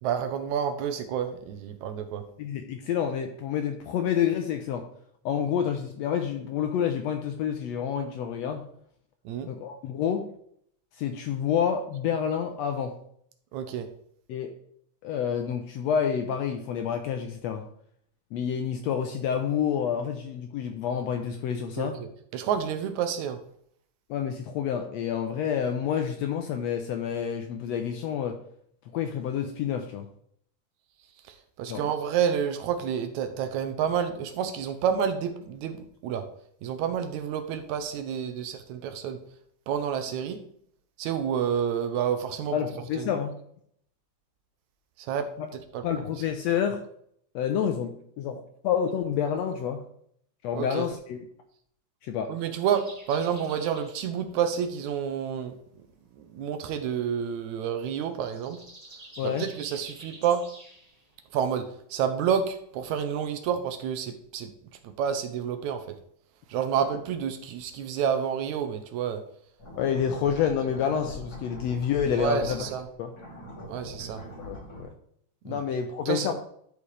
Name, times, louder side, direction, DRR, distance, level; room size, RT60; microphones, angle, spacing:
voice 1, 0.0-2.2 9.3-9.5 13.5-13.9 21.8-22.1 22.3-23.4 31.2-36.2 36.6-39.2 39.7-40.4 41.0-42.6 43.0-43.1 45.0-45.3 45.7-45.8 50.5-50.9 52.3-55.5 56.1-58.6 59.2-60.4 61.3-64.5 64.8-66.0 66.5-69.2 72.2-72.9 73.7-74.2 75.5-75.6 76.1-76.3, right 8 dB, 75° right, 8 dB, 1.9 m, -29 dB
voice 2, 2.4-4.8 5.2-8.6 9.5-10.2 10.9-12.9 14.3-14.5 15.0-17.6 18.3-22.0 24.1-28.4 28.9-30.1 31.7-31.9 42.5-43.3 45.4-45.5 45.8-46.8 47.3-49.8 50.4-51.2 52.0-52.3 59.2-59.5 69.8-72.6 73.0-73.1 74.4-74.9 75.4-76.3, left 8 dB, 80° left, 5 dB, 1.6 m, -28 dB
sound 1, 52.7-63.0, right 2 dB, 40° right, 0.5 m, -51 dB
sound 2, 69.6-72.8 73.1-74.8, equal, 30° left, 2.9 m, -42 dB
12.5 x 5.0 x 3.3 m, 0.67 s
omnidirectional pair, 3.6 m